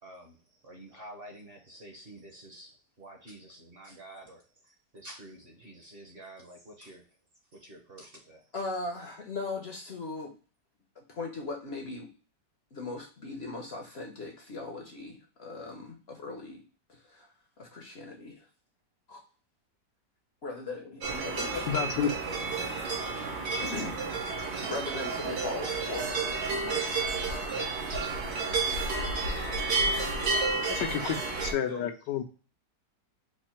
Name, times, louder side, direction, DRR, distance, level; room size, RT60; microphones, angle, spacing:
voice 1, 0.0-0.4 0.6-7.0 7.5-8.4 30.3-30.7 31.7-31.9, right 1 dB, 40° right, 1 dB, 0.9 m, -48 dB
voice 2, 8.5-10.3 11.0-12.1 12.7-16.6 16.9-17.3 17.6-18.5 19.1-19.2 20.4-22.0 23.6-24.0 24.4-26.9, left 3 dB, 50° left, 2 dB, 0.8 m, -39 dB
sound 1, 21.0-31.5, right 3 dB, 70° right, 1.8 m, -31 dB
voice 3, 21.7-22.1 30.9-32.2, left 8 dB, 85° left, 6 dB, 1.3 m, -30 dB
4.7 x 2.6 x 4.3 m, 0.36 s
omnidirectional pair, 1.8 m